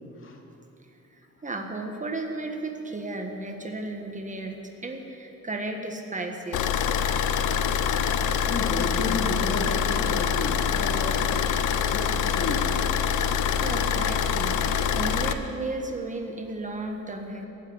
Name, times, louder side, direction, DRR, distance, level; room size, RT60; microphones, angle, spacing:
voice 1, 1.1-6.8 13.6-14.6 14.9-17.5, right 2 dB, 25° right, 3 dB, 1.6 m, -34 dB
Car / Idling, 6.5-15.3, left 7 dB, 80° left, 0.7 m, -25 dB
voice 2, 8.5-11.2 11.9-12.1 12.4-12.7, left 2 dB, 45° left, 1 dB, 2.3 m, -32 dB
17.5 x 7.5 x 8.1 m, 2.9 s
cardioid pair, 90°, 30 cm